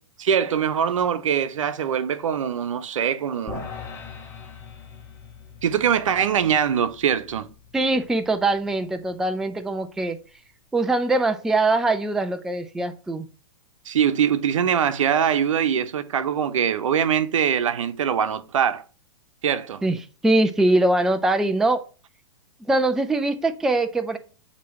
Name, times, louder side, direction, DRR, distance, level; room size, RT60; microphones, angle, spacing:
voice 1, 0.2-3.7 5.6-7.5 13.9-18.8 19.4-19.8, right 8 dB, 85° right, 0.8 m, -23 dB
sound 1, 3.5-9.8, left 5 dB, 15° left, 1.5 m, -42 dB
voice 2, 7.7-10.2 10.7-13.3 19.8-20.0 20.2-21.8 22.7-24.2, right 2 dB, 5° right, 0.3 m, -22 dB
8.2 x 3.0 x 4.6 m
hypercardioid pair, 145°, 16 cm